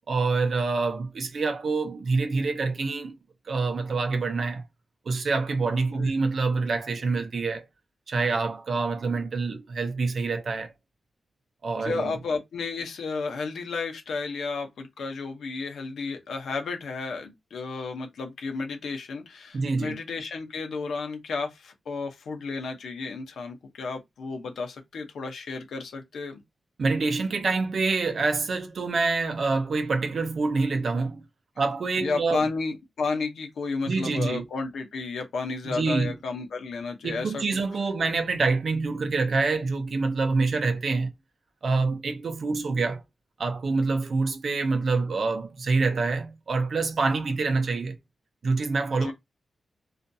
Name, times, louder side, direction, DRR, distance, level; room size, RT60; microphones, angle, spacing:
voice 1, 0.1-3.2 3.5-4.6 5.1-7.7 8.1-10.7 11.6-12.2 19.5-20.0 26.8-31.2 31.6-32.5 33.9-34.4 35.7-36.1 37.0-41.1 41.6-43.0 43.4-47.9 48.4-49.1, right 4 dB, 50° right, 0.5 m, -26 dB
voice 2, 11.8-26.4 32.0-37.4 49.0-49.1, left 4 dB, 90° left, 0.7 m, -32 dB
2.4 x 2.3 x 2.6 m
wide cardioid pair, 170°, 0 cm